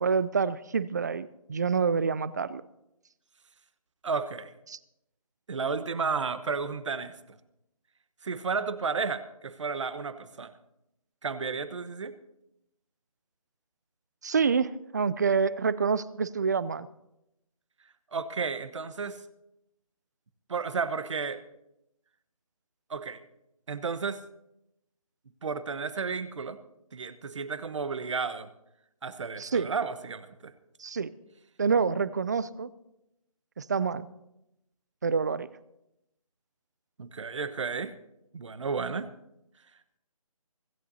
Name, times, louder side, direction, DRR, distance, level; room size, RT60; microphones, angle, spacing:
voice 1, 0.0-2.6 4.7-4.8 14.2-16.9 29.4-29.7 30.8-31.1 31.6-32.7 33.6-34.1 35.0-35.5, right 5 dB, 30° right, 18 dB, 0.4 m, -27 dB
voice 2, 4.0-4.5 5.5-7.1 8.2-10.5 11.2-12.1 18.1-19.2 20.5-21.4 22.9-23.2 23.7-24.2 25.4-26.6 26.9-28.5 29.0-30.5 37.0-37.9 38.3-39.1, right 5 dB, 55° right, 12 dB, 1.2 m, -32 dB
25.0 x 14.5 x 2.8 m, 0.86 s
figure-of-eight pair, 160°, 19 cm